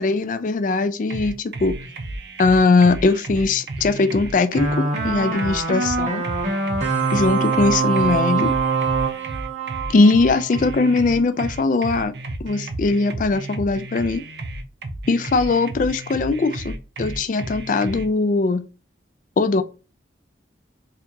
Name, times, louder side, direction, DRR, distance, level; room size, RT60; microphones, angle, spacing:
voice 1, 0.0-1.8 2.4-6.2 7.1-8.5 9.9-12.1 12.4-14.2 15.1-18.6 19.4-19.6, left 3 dB, 45° left, 0.3 m, -20 dB
sound 1, 1.1-18.1, right 2 dB, 60° right, 0.5 m, -33 dB
sound 2, 4.6-10.7, right 4 dB, 40° right, 1.0 m, -23 dB
4.4 x 2.5 x 2.6 m
head